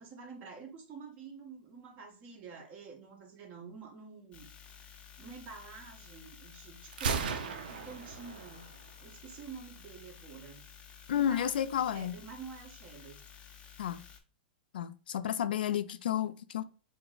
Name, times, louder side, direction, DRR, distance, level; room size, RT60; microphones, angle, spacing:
voice 1, 0.0-4.8 5.2-8.6 9.0-10.6 11.1-13.2, right 5 dB, 35° right, 1.3 m, -48 dB
sound 1, 4.3-14.2, left 8 dB, 25° left, 0.6 m, -53 dB
Gunshot gunfire, 6.9-8.9, right 5 dB, 75° right, 0.6 m, -36 dB
voice 2, 11.1-12.1 13.8-14.0 14.7-16.6, left 10 dB, 80° left, 0.3 m, -31 dB
4.4 x 2.1 x 3.9 m
hypercardioid pair, 130°, 5 cm